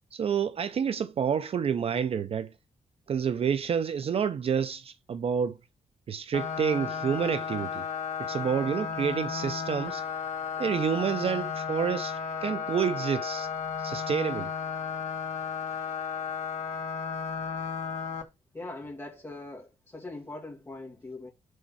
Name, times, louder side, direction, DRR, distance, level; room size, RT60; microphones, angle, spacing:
voice 1, 0.1-2.5 3.1-5.6 6.1-7.8 8.2-10.0 10.6-13.5 13.8-14.5, right 7 dB, 45° right, 0.5 m, -29 dB
sound 1, 6.3-18.2, left 6 dB, 55° left, 1.3 m, -34 dB
voice 2, 18.5-21.3, left 2 dB, 15° left, 2.2 m, -41 dB
6.3 x 4.3 x 5.5 m
wide cardioid pair, 175°, 14 cm